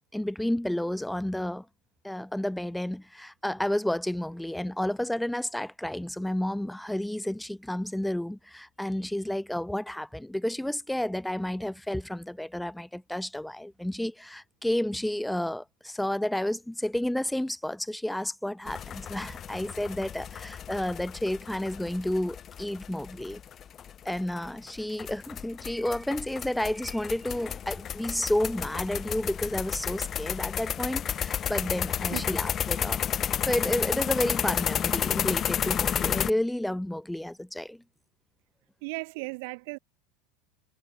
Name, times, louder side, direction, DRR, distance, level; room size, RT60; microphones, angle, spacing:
voice 1, 0.1-1.7 2.0-23.4 24.0-33.0 33.5-37.8, left 1 dB, 5° left, 0.9 m, -31 dB
sound 1, 18.7-36.3, left 9 dB, 35° left, 1.1 m, -32 dB
voice 2, 38.8-39.8, right 30 dB, 70° right, 0.6 m, -36 dB
supercardioid pair, 115°, 0 cm